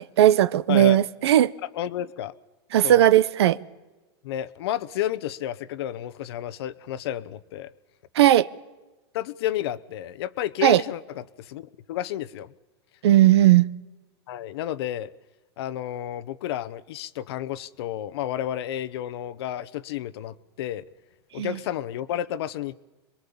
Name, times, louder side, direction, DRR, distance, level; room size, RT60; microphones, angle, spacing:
voice 1, 0.0-1.5 2.7-3.6 8.2-8.5 10.6-10.8 13.0-13.6 21.4-21.6, right 13 dB, 75° right, 0.9 m, -17 dB
voice 2, 0.7-1.0 1.6-2.3 2.8-3.1 4.2-7.7 9.1-12.5 14.3-15.1 15.6-20.8 21.3-22.7, left 11 dB, 70° left, 1.0 m, -31 dB
27.0 x 22.0 x 7.2 m
hypercardioid pair, 105°, 14 cm